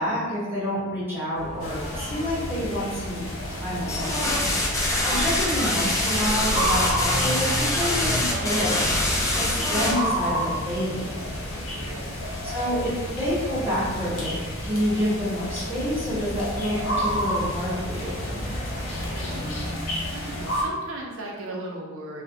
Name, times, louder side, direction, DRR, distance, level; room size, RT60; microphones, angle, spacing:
voice 1, 0.0-4.4 5.0-9.0 9.3-11.2 12.5-18.3, equal, 10° right, -10 dB, 0.7 m, -28 dB
sound 1, 1.3-19.7, equal, 35° left, 0.8 m, -37 dB
sound 2, 1.6-20.6, equal, 70° left, 0.6 m, -31 dB
sound 3, 3.9-9.9, left 1 dB, 15° left, 0.3 m, -24 dB
voice 2, 11.5-12.2 19.3-19.8 20.1-22.2, right 1 dB, 70° right, -1 dB, 0.5 m, -38 dB
2.3 x 2.1 x 2.6 m, 1.3 s
head